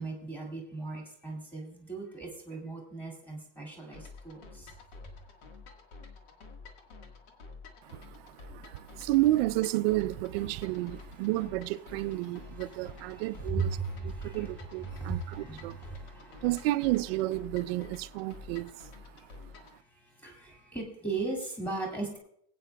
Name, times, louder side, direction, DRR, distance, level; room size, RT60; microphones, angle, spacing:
voice 1, 0.0-4.7 12.5-13.2 13.5-14.5 14.9-16.5 19.9-22.2, right 3 dB, 5° left, 2.1 m, -37 dB
sound 1, 3.9-19.8, left 4 dB, 65° left, 1.6 m, -50 dB
voice 2, 7.8-15.8 16.2-19.2, right 17 dB, 60° right, 0.5 m, -31 dB
sound 2, 10.6-11.0 12.1-12.6 13.6-14.0 14.9-15.2, left 1 dB, 35° left, 3.7 m, -57 dB
21.5 x 8.4 x 2.3 m
cardioid pair, 180°, 33 cm